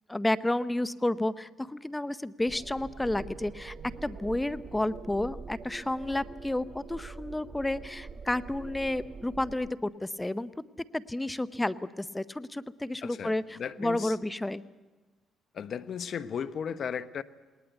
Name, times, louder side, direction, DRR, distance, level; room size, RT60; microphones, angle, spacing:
voice 1, 0.1-3.7 4.0-10.5 10.9-14.6, left 1 dB, 10° left, 0.7 m, -31 dB
sound 1, 2.5-9.7, right 4 dB, 40° right, 1.3 m, -44 dB
voice 2, 13.0-14.2 15.5-17.2, left 7 dB, 55° left, 0.9 m, -35 dB
20.0 x 19.5 x 8.1 m
cardioid pair, 80°, 0 cm